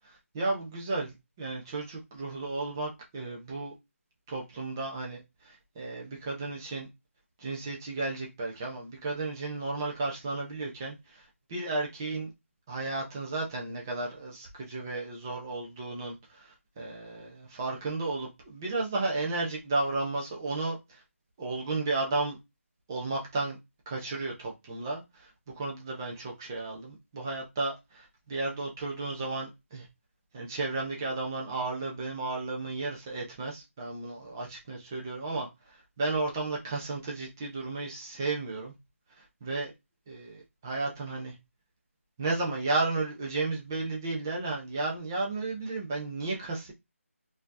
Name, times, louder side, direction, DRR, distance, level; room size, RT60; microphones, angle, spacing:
voice 1, 0.0-3.7 4.3-6.9 7.4-12.3 12.7-21.0 21.4-22.4 22.9-23.6 23.9-25.3 25.6-29.9 30.3-38.7 39.2-39.7 40.1-41.4 42.2-46.7, right 3 dB, 15° right, 0.6 m, -33 dB
4.2 x 2.8 x 2.5 m
figure-of-eight pair, 170°, 8 cm